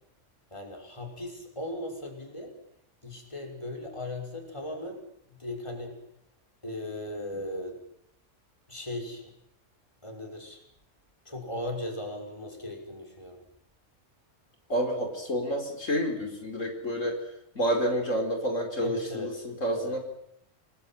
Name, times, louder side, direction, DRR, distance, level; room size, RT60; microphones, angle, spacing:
voice 1, 0.5-2.6 3.0-6.0 6.6-7.8 8.7-9.3 10.0-10.6 11.2-13.4 18.8-19.5 19.7-20.0, left 1 dB, 25° left, 2 dB, 6.2 m, -37 dB
voice 2, 14.7-17.2 17.5-20.0, equal, 85° left, 3 dB, 4.9 m, -29 dB
29.0 x 20.0 x 9.2 m, 0.78 s
omnidirectional pair, 1.3 m